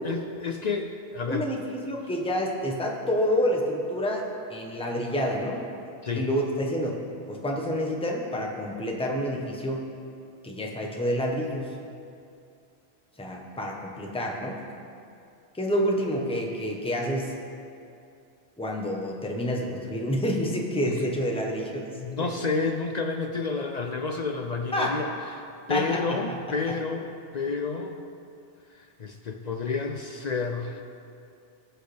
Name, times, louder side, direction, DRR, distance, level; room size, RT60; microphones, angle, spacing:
voice 1, 0.0-1.5 6.0-6.3 20.8-21.0 22.0-28.0 28.7-30.8, left 4 dB, 50° left, 4 dB, 0.5 m, -30 dB
voice 2, 1.3-5.7 6.1-7.0 7.3-9.9 10.4-11.7 13.2-14.6 15.5-17.3 18.6-21.9 22.2-22.3 24.7-25.0 25.7-26.2, equal, 5° left, 0 dB, 0.9 m, -28 dB
18.0 x 6.3 x 3.4 m, 2.5 s
omnidirectional pair, 1.1 m